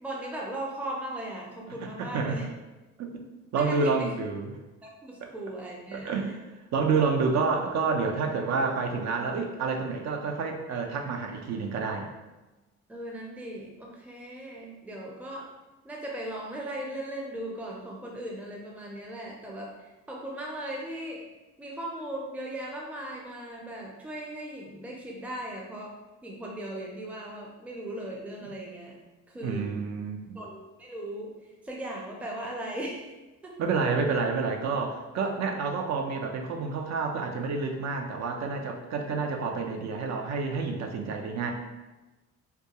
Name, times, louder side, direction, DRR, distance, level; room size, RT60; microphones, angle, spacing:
voice 1, 0.0-2.4 3.5-4.1 4.8-6.3 12.9-15.5 15.8-19.7 20.1-21.2 21.6-25.9 26.2-29.0 29.3-29.7 30.4-31.4 31.6-33.1 33.4-33.6, right 1 dB, 5° right, -2 dB, 0.4 m, -38 dB
voice 2, 1.7-2.5 3.0-3.2 3.5-4.6 5.2-5.3 5.9-6.4 6.7-12.1 28.4-28.5 29.4-30.4 33.6-41.5, right 4 dB, 60° right, 3 dB, 0.5 m, -29 dB
2.3 x 2.3 x 2.8 m, 1.1 s
cardioid pair, 90°, 30 cm